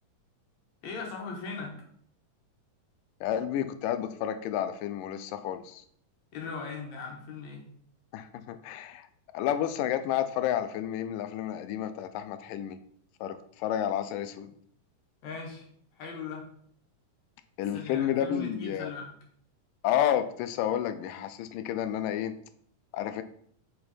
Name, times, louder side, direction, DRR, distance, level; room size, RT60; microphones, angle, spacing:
voice 1, 0.8-1.8 6.3-7.6 15.2-15.7 16.0-16.5 17.7-19.1, left 4 dB, 65° left, 0 dB, 2.4 m, -39 dB
voice 2, 3.2-5.8 8.1-9.1 9.3-12.8 13.2-14.5 17.6-18.9 19.8-22.3 22.9-23.2, left 10 dB, 90° left, 10 dB, 2.2 m, -30 dB
5.5 x 4.4 x 4.2 m, 0.63 s
omnidirectional pair, 3.7 m